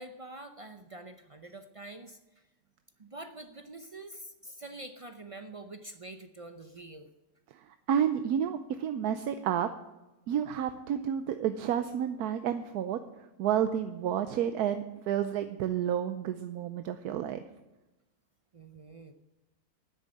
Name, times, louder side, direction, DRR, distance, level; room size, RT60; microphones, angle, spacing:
voice 1, 0.0-2.2 3.0-7.1 18.5-19.1, right 2 dB, 55° right, 7 dB, 0.3 m, -46 dB
voice 2, 7.5-9.7 10.3-13.0 13.4-17.4, right 9 dB, 80° right, 9 dB, 1.2 m, -30 dB
10.0 x 8.2 x 9.6 m, 1.0 s
omnidirectional pair, 1.7 m